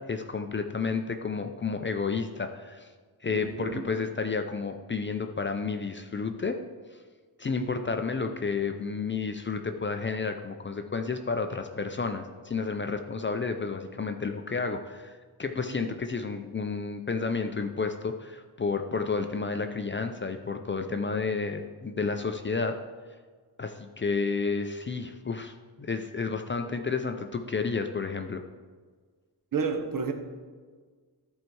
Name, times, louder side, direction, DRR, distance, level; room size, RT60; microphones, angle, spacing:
voice 1, 0.0-2.9 3.2-6.6 7.4-22.8 23.6-28.4, left 4 dB, 30° left, 6 dB, 0.5 m, -31 dB
voice 2, 3.3-3.8 29.5-30.1, right 5 dB, 50° right, 6 dB, 1.1 m, -30 dB
13.5 x 4.5 x 4.6 m, 1.5 s
wide cardioid pair, 120°, 42 cm